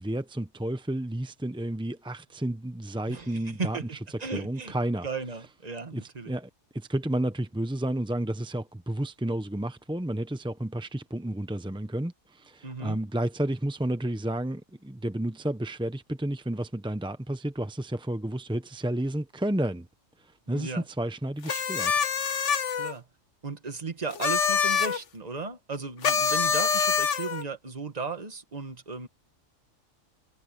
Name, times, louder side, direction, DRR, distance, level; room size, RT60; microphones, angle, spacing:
voice 1, 0.0-3.8 4.3-5.1 5.9-19.9 20.2-22.0, right 1 dB, 5° right, 0.4 m, -31 dB
voice 2, 3.1-4.8 5.0-6.3 12.6-13.0 20.5-20.8 22.8-23.1 23.4-29.1, right 4 dB, 30° right, 1.6 m, -36 dB
sound 1, 21.5-22.9 24.1-25.0 26.0-27.4, left 6 dB, 65° left, 1.4 m, -25 dB
omnidirectional pair, 1.4 m